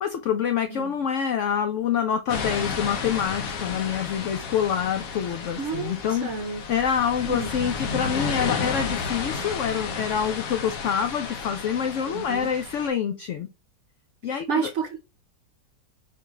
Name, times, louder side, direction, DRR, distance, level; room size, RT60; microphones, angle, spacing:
voice 1, 0.0-6.3 6.7-13.5 14.2-14.7, left 8 dB, 85° left, 0.6 m, -26 dB
sound 1, 2.3-12.9, left 5 dB, 60° left, 1.2 m, -32 dB
voice 2, 5.6-6.6 7.2-7.5 12.1-12.5 14.3-15.0, right 5 dB, 60° right, 0.8 m, -30 dB
4.5 x 3.1 x 3.6 m
omnidirectional pair, 1.8 m